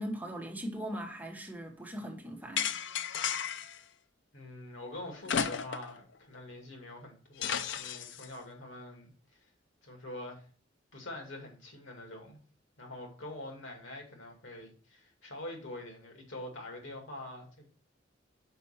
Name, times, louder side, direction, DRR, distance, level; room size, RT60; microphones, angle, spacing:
voice 1, 0.0-2.7, equal, 10° right, 1.2 m, -39 dB
sound 1, 2.6-3.8 5.2-6.0 6.3-6.4 7.4-8.3, left 7 dB, 65° left, 0.5 m, -33 dB
voice 2, 4.3-9.4 9.8-10.5 10.9-12.4 12.8-17.7, left 1 dB, 90° left, 2.2 m, -45 dB
5.6 x 5.0 x 5.5 m
head